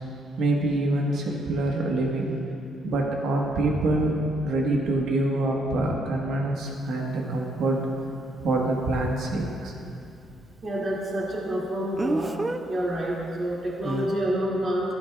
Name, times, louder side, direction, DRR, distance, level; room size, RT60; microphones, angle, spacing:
voice 1, 0.4-2.3 2.8-4.1 4.4-7.8 8.4-9.7, right 2 dB, 80° right, -1 dB, 1.4 m, -25 dB
Speech, 6.7-6.8 12.0-12.6 13.8-14.1, right 2 dB, 20° right, 0.4 m, -28 dB
voice 2, 10.6-12.4 12.7-14.9, right 1 dB, 40° right, -5 dB, 2.5 m, -28 dB
13.0 x 11.5 x 2.4 m, 2.6 s
cardioid pair, 90°, 0 cm